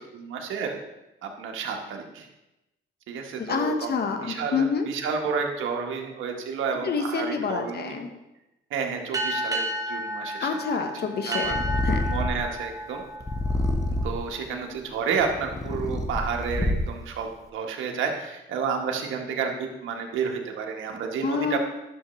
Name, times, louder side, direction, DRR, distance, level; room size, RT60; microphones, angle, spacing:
voice 1, 0.1-0.8 1.2-2.3 3.1-3.9 4.2-8.0 8.7-10.5 11.2-11.6 12.1-13.0 14.0-21.6, right 6 dB, 80° right, 2 dB, 1.3 m, -30 dB
voice 2, 3.4-4.9 6.8-8.1 10.4-12.0 21.2-21.6, left 5 dB, 55° left, 6 dB, 1.2 m, -28 dB
sound 1, 9.1-14.2, right 1 dB, 20° right, 1.2 m, -32 dB
Purr, 11.4-12.5 13.2-14.3 15.0-17.1, left 1 dB, 15° left, 1.0 m, -27 dB
11.0 x 6.4 x 3.2 m, 0.95 s
cardioid pair, 90°, 20 cm